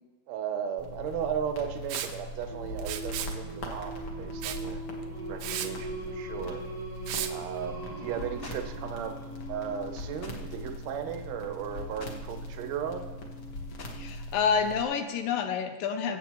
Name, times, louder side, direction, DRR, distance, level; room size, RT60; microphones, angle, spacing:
voice 1, 0.3-4.8 5.3-6.6 7.3-9.1 9.5-13.1, right 8 dB, 70° right, 6 dB, 1.8 m, -36 dB
sound 1, 0.8-14.8, left 1 dB, 50° left, 1.9 m, -41 dB
Liquid, 1.9-2.1 2.8-3.4 4.4-4.6 5.0-5.1 5.4-5.7 7.1-7.3, right 11 dB, 85° right, 2.4 m, -34 dB
Singing, 2.5-14.2, right 2 dB, 30° left, 0.4 m, -42 dB
voice 2, 14.0-16.2, left 6 dB, 80° left, 6 dB, 2.4 m, -28 dB
23.5 x 8.0 x 3.1 m, 1.2 s
omnidirectional pair, 4.1 m